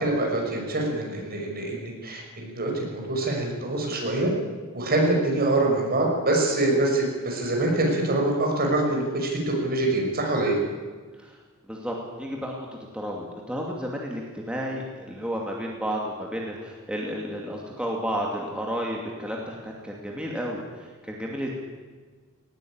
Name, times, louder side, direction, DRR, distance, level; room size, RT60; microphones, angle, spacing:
voice 1, 0.0-4.3 4.7-10.6, right 2 dB, 45° right, 0 dB, 6.0 m, -25 dB
voice 2, 11.7-12.7 12.9-21.5, equal, 5° right, -2 dB, 2.6 m, -32 dB
19.0 x 18.5 x 9.0 m, 1.5 s
head